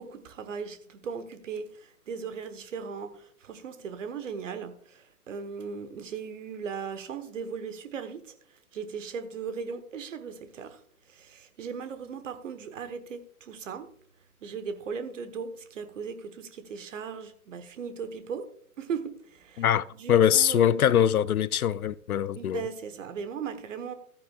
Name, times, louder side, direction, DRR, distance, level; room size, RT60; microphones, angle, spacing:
voice 1, 0.0-8.3 8.7-10.8 11.1-13.9 14.4-18.5 18.8-19.7 20.0-20.8 22.3-23.9, right 6 dB, 55° right, 1.3 m, -38 dB
voice 2, 19.6-22.6, left 10 dB, 70° left, 0.5 m, -23 dB
14.0 x 9.2 x 2.4 m
figure-of-eight pair, 125°, 45 cm